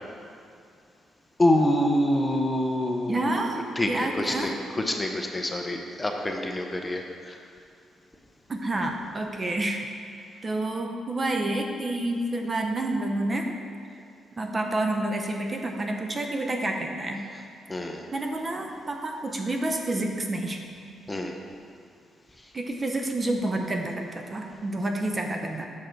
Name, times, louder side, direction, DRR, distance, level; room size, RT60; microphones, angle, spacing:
voice 1, 1.4-3.4 3.8-7.3 17.7-18.0 21.1-21.3, left 1 dB, 15° left, 2 dB, 0.6 m, -26 dB
voice 2, 3.1-4.5 8.5-9.9 10.4-13.6 14.4-17.2 18.1-20.6 22.5-25.7, right 2 dB, 25° right, 3 dB, 0.6 m, -29 dB
7.4 x 6.3 x 4.5 m, 2.4 s
cardioid pair, 120°, 0 cm